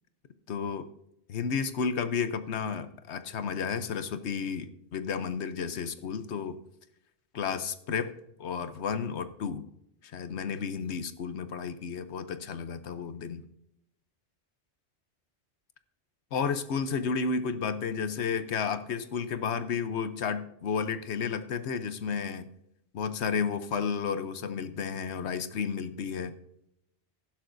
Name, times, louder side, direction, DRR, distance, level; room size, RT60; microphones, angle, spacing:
voice 1, 0.5-0.9 1.3-6.6 7.3-9.6 10.0-13.4 16.3-22.5 22.9-26.3, left 6 dB, 75° left, 11 dB, 1.1 m, -32 dB
15.0 x 11.5 x 2.6 m, 0.80 s
omnidirectional pair, 1.2 m